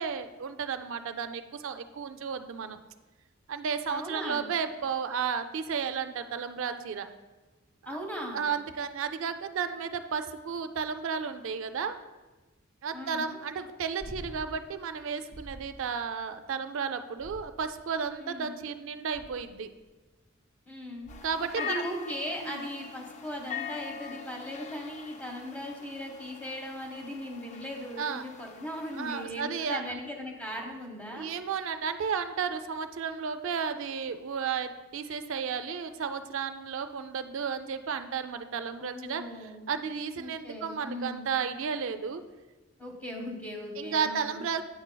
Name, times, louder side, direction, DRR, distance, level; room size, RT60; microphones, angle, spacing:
voice 1, 0.0-2.8 3.5-7.1 7.8-8.0 8.3-12.0 12.8-19.7 21.2-21.8 22.4-22.6 28.0-28.2 28.9-29.9 31.1-42.2 43.8-44.6, right 6 dB, 65° right, 9 dB, 0.4 m, -33 dB
voice 2, 3.9-4.5 7.9-8.4 12.9-13.4 18.2-18.6 20.7-21.1 21.6-31.3 38.8-39.6 40.2-41.3 42.8-44.4, equal, 5° left, 0 dB, 1.0 m, -38 dB
sound 1, 14.0-14.6 15.3-15.8 17.2-17.9 19.1-19.6 21.0-21.5 23.9-24.0, equal, 55° left, 1.4 m, -46 dB
sound 2, 21.1-29.2, left 8 dB, 35° left, 0.3 m, -42 dB
8.6 x 6.1 x 2.2 m, 1.2 s
head